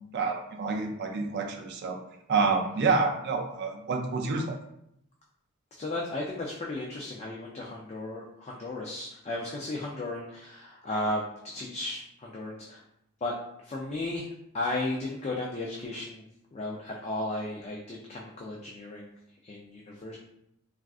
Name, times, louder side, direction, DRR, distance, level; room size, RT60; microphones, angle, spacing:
voice 1, 0.1-2.0 2.3-4.5, right 4 dB, 55° right, 3 dB, 0.4 m, -28 dB
voice 2, 5.7-12.8 13.2-13.3 13.6-14.3 14.5-16.3 16.5-19.1 19.4-20.2, left 2 dB, 30° left, -2 dB, 0.3 m, -35 dB
3.5 x 2.4 x 2.3 m, 0.77 s
head